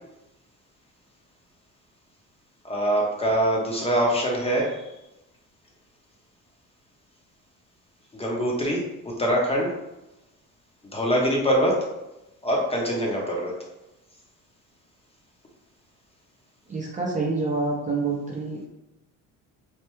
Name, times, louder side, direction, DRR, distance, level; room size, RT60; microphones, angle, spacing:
voice 1, 2.6-4.9 8.1-9.7 10.9-11.9 12.4-13.6, equal, 15° left, -1 dB, 0.7 m, -24 dB
voice 2, 16.7-18.7, right 3 dB, 20° right, -3 dB, 0.5 m, -27 dB
3.3 x 2.2 x 3.0 m, 0.94 s
cardioid pair, 105°, 35 cm